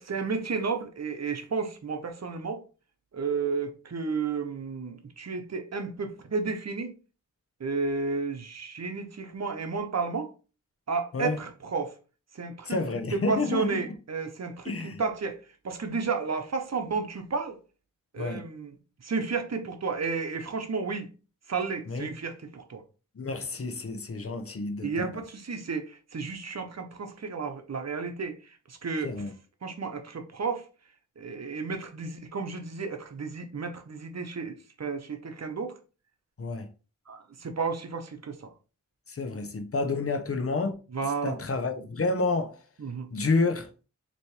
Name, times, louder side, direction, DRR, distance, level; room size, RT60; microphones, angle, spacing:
voice 1, 0.0-2.6 3.1-6.9 7.6-10.3 10.9-11.9 12.3-12.8 13.1-15.4 15.6-17.6 18.1-18.8 19.0-21.1 21.5-22.8 24.8-28.4 28.7-29.3 29.6-30.6 31.2-35.7 37.1-38.5 40.9-41.4 42.8-43.1, right 4 dB, 50° right, 0.9 m, -32 dB
voice 2, 12.7-13.8 14.6-15.0 18.2-18.4 21.9-22.1 23.2-25.1 29.0-29.3 36.4-36.7 39.1-40.7 41.2-42.5 43.1-43.7, left 3 dB, 45° left, 0.8 m, -29 dB
4.2 x 3.0 x 3.2 m
cardioid pair, 50°, 33 cm